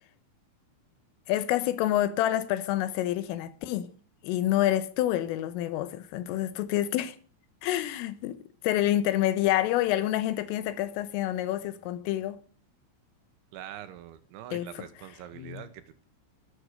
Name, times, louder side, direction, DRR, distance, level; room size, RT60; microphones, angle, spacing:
voice 1, 1.3-3.9 4.2-7.2 7.6-12.4 14.5-14.9 15.4-15.7, left 13 dB, 80° left, 3.6 m, -28 dB
voice 2, 13.5-16.0, right 11 dB, 75° right, 3.2 m, -44 dB
14.0 x 13.5 x 6.7 m
omnidirectional pair, 5.9 m